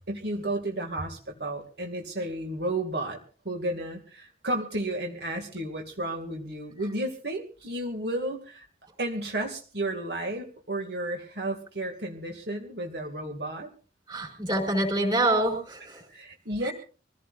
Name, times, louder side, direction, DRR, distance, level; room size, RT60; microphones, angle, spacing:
voice 1, 0.1-3.2 3.4-8.6 9.0-13.7 16.1-16.7, right 1 dB, 70° right, 2 dB, 2.4 m, -32 dB
voice 2, 14.1-16.0 16.6-16.7, right 1 dB, 25° right, 5 dB, 5.0 m, -26 dB
25.0 x 16.5 x 2.6 m, 0.38 s
head